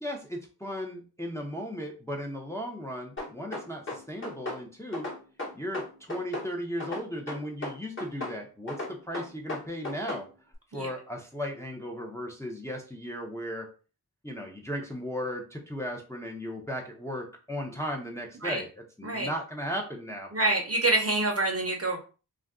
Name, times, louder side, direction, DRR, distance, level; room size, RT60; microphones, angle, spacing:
voice 1, 0.0-5.1 5.5-10.3 10.7-13.7 14.2-20.3, equal, 5° left, 0 dB, 0.6 m, -36 dB
sound 1, 3.2-4.6 4.9-6.5 6.8-8.4 8.7-10.2, left 2 dB, 30° left, 1.1 m, -35 dB
voice 2, 20.3-22.0, right 2 dB, 40° right, 2 dB, 0.7 m, -26 dB
2.5 x 2.2 x 3.5 m, 0.35 s
wide cardioid pair, 50°, 39 cm